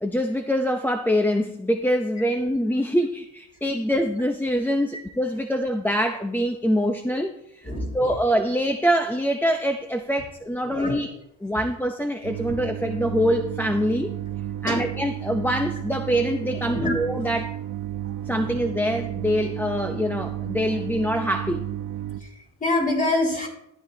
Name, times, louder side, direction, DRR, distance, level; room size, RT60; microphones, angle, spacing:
voice 1, 0.0-11.1 11.4-14.1 14.6-17.5 18.3-21.6, equal, 5° left, 3 dB, 0.7 m, -24 dB
voice 2, 7.6-8.2 10.6-11.0 14.7-14.8 16.5-17.0 18.2-18.6 20.7-20.8 22.2-23.5, left 2 dB, 25° left, -1 dB, 4.6 m, -27 dB
sound 1, 12.2-22.2, right 12 dB, 85° right, 1.0 m, -32 dB
13.5 x 10.5 x 2.8 m, 0.80 s
cardioid pair, 90°, 30 cm